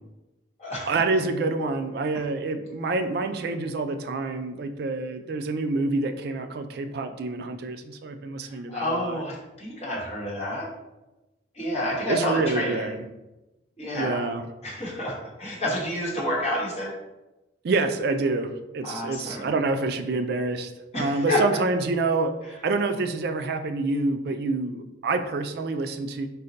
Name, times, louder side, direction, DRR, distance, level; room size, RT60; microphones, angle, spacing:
voice 1, 0.9-9.2 12.1-13.0 13.9-14.4 17.6-26.3, right 3 dB, 55° right, 8 dB, 0.3 m, -27 dB
voice 2, 8.7-10.7 11.5-12.9 13.8-14.3 14.6-16.9 18.8-19.5 20.9-21.4, left 1 dB, 35° left, -6 dB, 1.0 m, -29 dB
4.0 x 2.1 x 3.8 m, 1.0 s
head